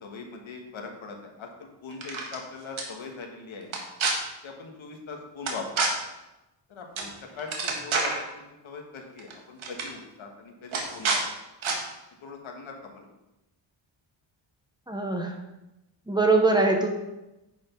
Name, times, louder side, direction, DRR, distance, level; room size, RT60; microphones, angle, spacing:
voice 1, 0.0-3.8 4.4-6.0 6.7-7.1 7.4-11.2 12.2-13.1, left 4 dB, 80° left, 2 dB, 1.7 m, -41 dB
sound 1, 1.9-2.4 2.8-2.9 3.7-4.1 5.5-5.9 7.0-7.1 7.4-8.2 9.2-9.3 9.6-9.9 10.7-11.2 11.6-11.8, right 4 dB, 80° right, 1.8 m, -27 dB
voice 2, 14.9-15.3 16.1-16.9, right 3 dB, 10° right, 2 dB, 1.1 m, -22 dB
9.8 x 5.3 x 5.4 m, 0.96 s
wide cardioid pair, 145°, 47 cm